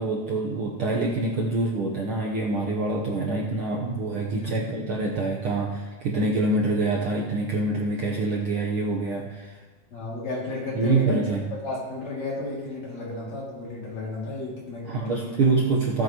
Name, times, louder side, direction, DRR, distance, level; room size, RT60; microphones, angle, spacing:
voice 1, 0.0-9.5 10.8-11.5 14.9-16.0, right 3 dB, 60° right, -2 dB, 1.5 m, -25 dB
voice 2, 9.9-15.4 15.8-15.9, left 2 dB, 65° left, -4 dB, 3.8 m, -33 dB
17.5 x 7.9 x 3.0 m, 1.2 s
omnidirectional pair, 3.4 m